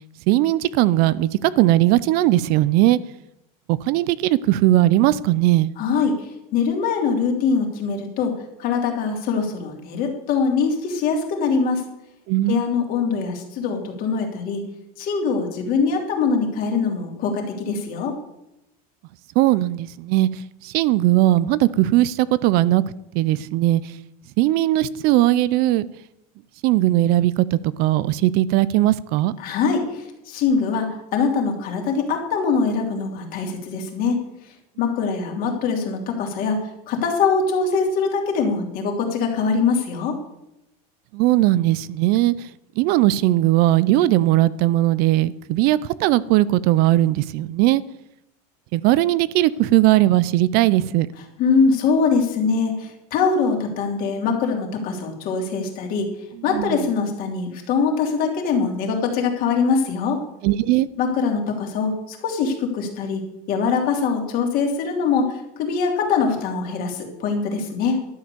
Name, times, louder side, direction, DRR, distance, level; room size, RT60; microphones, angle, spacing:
voice 1, 0.3-3.0 3.7-5.7 12.3-12.8 19.4-20.3 20.6-22.8 23.1-23.8 24.4-25.9 26.6-29.3 41.1-42.3 42.8-47.8 48.7-51.1 56.5-56.8 60.4-60.9, right 15 dB, 55° right, 18 dB, 0.5 m, -18 dB
voice 2, 5.8-11.8 12.5-14.6 15.0-18.2 29.4-34.2 34.8-40.2 51.4-56.1 56.4-60.2 61.0-63.2 63.5-68.0, left 5 dB, 50° left, 2 dB, 3.1 m, -23 dB
12.0 x 7.7 x 6.8 m, 0.85 s
supercardioid pair, 135°, 19 cm